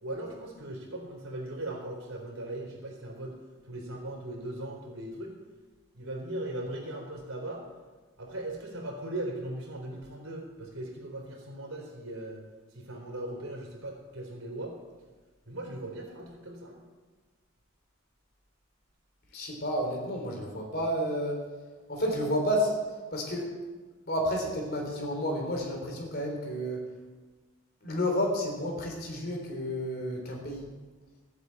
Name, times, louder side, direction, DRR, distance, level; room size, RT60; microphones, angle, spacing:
voice 1, 0.0-3.4 3.6-5.3 5.9-7.6 8.2-12.4 12.7-14.7 15.5-16.8, right 1 dB, 75° right, 1 dB, 3.8 m, -38 dB
voice 2, 19.3-21.4 21.9-22.7 23.1-23.5 24.1-26.9 27.8-30.6, equal, 45° left, 1 dB, 3.5 m, -31 dB
14.0 x 8.1 x 8.2 m, 1.3 s
head